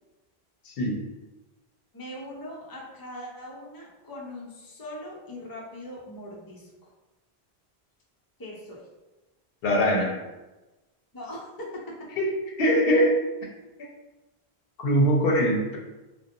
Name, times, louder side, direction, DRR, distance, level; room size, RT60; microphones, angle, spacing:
voice 1, 0.7-1.0 9.6-10.2 12.2-12.3 12.6-13.2 14.8-15.8, equal, 70° left, 0 dB, 0.7 m, -22 dB
voice 2, 1.9-6.9 8.4-8.9 11.1-12.1, left 1 dB, 35° left, -3 dB, 0.3 m, -40 dB
2.5 x 2.1 x 2.6 m, 1.1 s
omnidirectional pair, 1.0 m